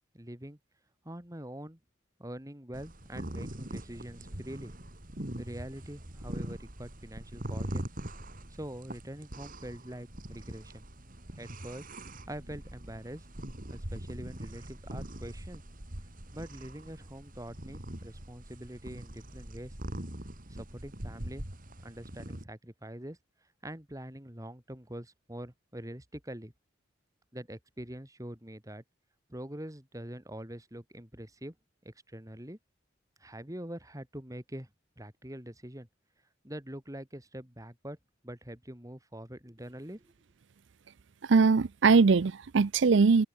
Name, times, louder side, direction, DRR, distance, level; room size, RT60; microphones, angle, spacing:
voice 1, 0.1-0.6 1.0-1.8 2.2-4.7 5.4-7.9 8.5-10.8 11.4-11.9 12.3-13.3 13.7-15.6 16.3-19.7 20.5-21.5 21.8-23.2 23.6-26.5 27.3-28.8 29.3-31.5 31.8-32.6 33.2-34.7 35.0-35.9 36.4-38.0 38.2-40.1, right 1 dB, 15° right, 2.8 m, -44 dB
sound 1, 2.7-22.4, right 1 dB, 45° right, 3.4 m, -42 dB
voice 2, 41.2-43.3, right 4 dB, 65° right, 0.5 m, -21 dB
head